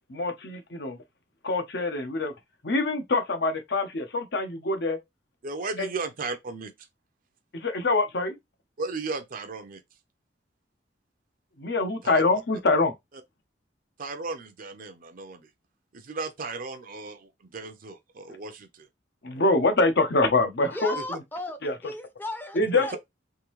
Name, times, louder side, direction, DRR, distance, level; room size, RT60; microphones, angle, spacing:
voice 1, 0.1-1.0 1.4-2.3 2.6-5.0 5.8-5.9 7.5-8.4 11.6-12.9 19.2-21.2 21.6-21.8 22.5-23.0, left 3 dB, 65° left, 0.8 m, -25 dB
voice 2, 5.4-6.7 8.8-9.8 12.0-12.2 14.0-15.5 15.9-18.9 20.9-21.0 22.7-23.0, right 3 dB, 50° right, 0.5 m, -35 dB
voice 3, 20.7-23.0, left 1 dB, 10° left, 0.6 m, -36 dB
3.7 x 2.6 x 3.0 m
head